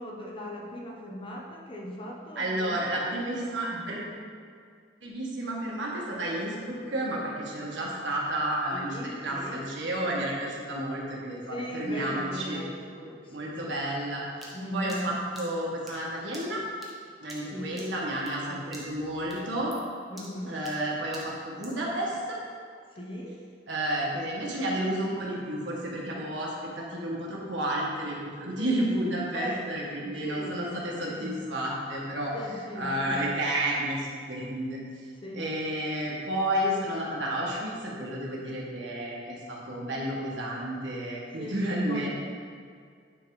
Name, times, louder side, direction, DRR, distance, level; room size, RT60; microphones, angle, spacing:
voice 1, 0.0-2.8 8.7-9.7 10.1-10.3 11.5-13.8 14.5-15.4 17.5-17.9 18.4-18.6 19.3-19.7 20.1-20.6 22.9-23.4 28.6-28.9 29.3-31.4 32.3-33.3 35.2-35.6 41.4-42.1, left 1 dB, 30° left, -1 dB, 0.9 m, -39 dB
voice 2, 2.3-4.1 5.0-12.6 13.3-14.2 14.7-16.6 17.2-19.7 20.5-22.4 23.7-32.3 32.8-34.8 35.3-42.1, right 1 dB, 75° right, -4 dB, 1.5 m, -31 dB
sound 1, 14.4-18.5 18.7-19.1 19.3-21.9, right 1 dB, ahead, 1.1 m, -48 dB
9.4 x 3.5 x 4.8 m, 2.2 s
head